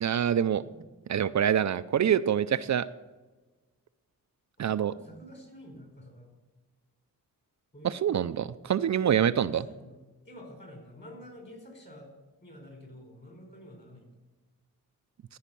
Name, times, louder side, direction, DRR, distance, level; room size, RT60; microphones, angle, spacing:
voice 1, 0.0-0.6 1.1-2.9 4.6-4.9 7.8-9.7, right 9 dB, 55° right, 13 dB, 0.5 m, -26 dB
voice 2, 0.6-1.0 4.6-6.3 7.7-8.0 9.3-10.0 10.2-12.1 12.4-14.2, equal, 30° left, 2 dB, 4.4 m, -49 dB
16.0 x 5.5 x 6.9 m, 1.2 s
wide cardioid pair, 110°, 34 cm